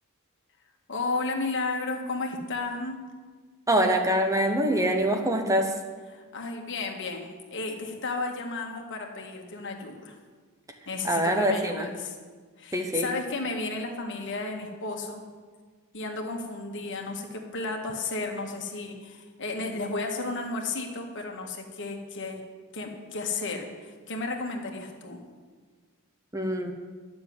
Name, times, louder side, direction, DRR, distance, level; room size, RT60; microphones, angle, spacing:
voice 1, 0.9-3.0 6.1-10.2 10.9-12.2 12.6-15.2 15.9-22.4 22.7-25.2, left 3 dB, 55° left, 2 dB, 1.8 m, -33 dB
voice 2, 3.7-5.7 11.0-11.9 12.7-13.1 26.3-26.7, right 1 dB, 15° right, 4 dB, 1.0 m, -24 dB
11.5 x 7.0 x 9.5 m, 1.5 s
head